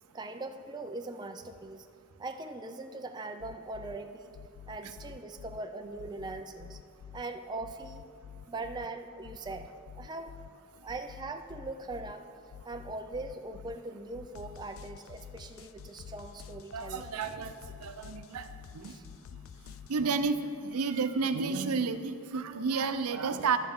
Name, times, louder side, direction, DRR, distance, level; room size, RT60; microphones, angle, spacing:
voice 1, 0.1-1.9 2.2-4.4 4.7-6.8 7.1-8.1 8.5-9.7 9.9-10.3 10.8-12.2 12.6-17.1 18.9-19.0, right 2 dB, 20° right, 5 dB, 0.4 m, -41 dB
sound 1, 3.4-4.0 4.3-5.6 6.0-7.2 7.6-8.9 9.2-10.5 10.9-12.1 12.5-13.8 14.1-20.0, left 8 dB, 60° left, 0.3 m, -48 dB
voice 2, 16.7-18.5 18.7-18.9 19.9-23.6, right 4 dB, 85° right, 10 dB, 0.6 m, -31 dB
11.5 x 9.0 x 3.6 m, 2.4 s
head